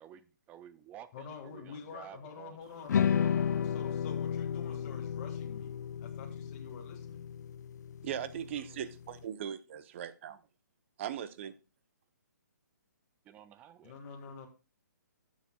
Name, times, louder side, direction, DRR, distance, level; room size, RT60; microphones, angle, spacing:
voice 1, 0.0-3.1 13.3-14.0, right 10 dB, 15° right, 14 dB, 0.4 m, -52 dB
voice 2, 1.1-7.3 13.8-14.5, left 5 dB, 30° left, 1 dB, 1.8 m, -48 dB
sound 1, 2.9-9.2, left 8 dB, 65° left, 0.4 m, -33 dB
voice 3, 8.0-10.4 11.0-11.5, right 9 dB, 40° right, 14 dB, 0.8 m, -39 dB
16.5 x 7.3 x 2.3 m, 0.31 s
hypercardioid pair, 150°, 10 cm